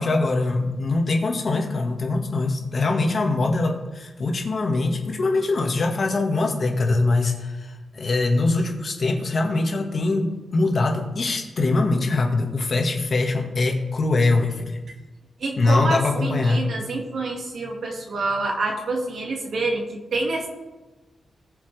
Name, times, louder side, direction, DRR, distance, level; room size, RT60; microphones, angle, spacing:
voice 1, 0.0-14.8 15.6-16.6, left 3 dB, 40° left, 2 dB, 1.7 m, -23 dB
voice 2, 15.4-20.5, right 2 dB, 60° right, 1 dB, 2.1 m, -27 dB
19.5 x 7.1 x 3.4 m, 1.2 s
wide cardioid pair, 165°, 0 cm